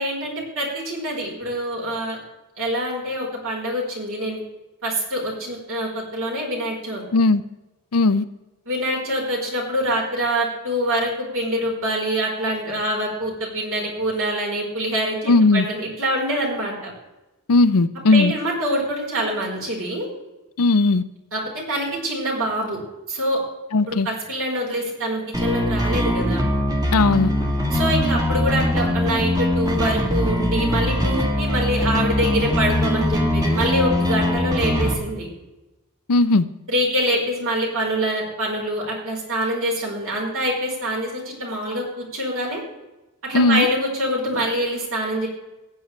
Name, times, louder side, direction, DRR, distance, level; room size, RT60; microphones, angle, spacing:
voice 1, 0.0-2.2 2.6-4.4 4.8-7.0 8.7-16.9 18.1-20.1 21.3-21.4 21.7-22.8 23.1-23.4 23.9-26.4 27.7-35.3 36.7-42.6 43.2-45.3, equal, 65° right, -2 dB, 4.3 m, -25 dB
voice 2, 7.9-8.2 15.3-15.6 17.5-18.3 20.6-21.0 23.7-24.1 26.9-27.3 36.1-36.4 43.3-43.7, left 3 dB, 75° left, 13 dB, 0.6 m, -17 dB
sound 1, 25.3-34.9, left 1 dB, 15° right, 1.6 m, -22 dB
15.5 x 9.4 x 3.3 m, 1.0 s
head